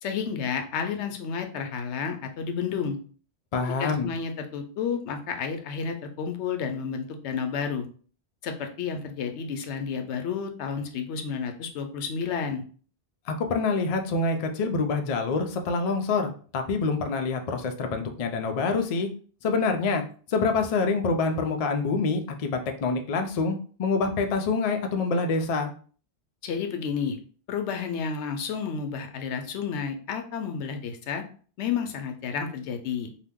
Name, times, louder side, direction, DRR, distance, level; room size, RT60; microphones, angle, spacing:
voice 1, 0.0-3.0 3.8-7.9 8.4-12.6 26.4-27.2 27.5-31.2 31.6-33.1, left 6 dB, 85° left, 6 dB, 0.9 m, -31 dB
voice 2, 3.5-4.1 13.3-19.1 19.4-20.0 20.3-25.7, left 4 dB, 55° left, 4 dB, 0.4 m, -26 dB
2.8 x 2.1 x 3.5 m, 0.42 s
omnidirectional pair, 1.1 m